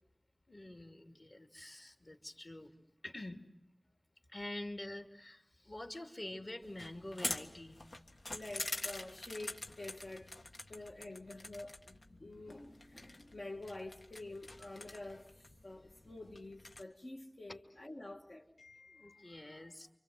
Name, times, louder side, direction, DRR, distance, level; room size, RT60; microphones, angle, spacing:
voice 1, 0.5-2.7 3.0-3.5 4.3-7.8 17.5-17.6 18.9-20.0, left 1 dB, 45° left, 2.6 m, -47 dB
sound 1, 6.6-16.8, left 2 dB, 80° left, 1.8 m, -46 dB
voice 2, 8.3-10.3 10.7-19.6, left 2 dB, 65° left, 1.8 m, -48 dB
29.5 x 26.0 x 7.7 m
wide cardioid pair, 60°, 0 cm